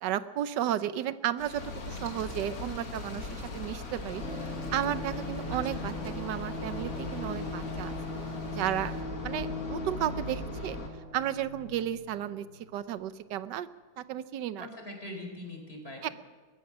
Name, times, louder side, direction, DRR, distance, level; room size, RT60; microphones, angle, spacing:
voice 1, 0.0-7.9 8.5-8.9 9.2-10.8 11.1-13.7 14.0-14.7 16.0-16.1, right 11 dB, 65° right, 13 dB, 1.3 m, -33 dB
Trees Blowing in a Steady Wind, 1.4-9.0, left 3 dB, 65° left, 2.8 m, -48 dB
sound 1, 1.5-10.9, left 3 dB, 45° left, 2.4 m, -40 dB
sound 2, 4.1-12.7 12.9-13.0, left 2 dB, 85° right, 8.0 m, -40 dB
voice 2, 5.5-5.9 14.6-16.1, left 1 dB, 30° left, 2 dB, 4.8 m, -42 dB
21.5 x 20.5 x 6.1 m, 1.3 s
omnidirectional pair, 2.2 m